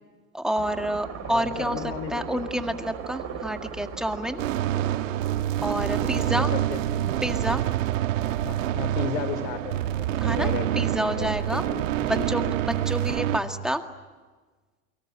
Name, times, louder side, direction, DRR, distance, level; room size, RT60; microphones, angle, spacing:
voice 1, 0.3-1.8 2.1-4.4 5.6-6.5 7.2-7.7 10.2-11.6 12.0-13.8, equal, ahead, 5 dB, 1.9 m, -29 dB
sound 1, 0.6-12.6, right 7 dB, 40° right, 4.2 m, -40 dB
voice 2, 1.2-2.4 5.9-7.1 8.3-12.5, left 8 dB, 65° left, 14 dB, 3.1 m, -35 dB
sound 2, 4.4-13.4, right 12 dB, 80° right, 1.4 m, -27 dB
29.0 x 24.5 x 8.1 m, 1.3 s
supercardioid pair, 135°, 38 cm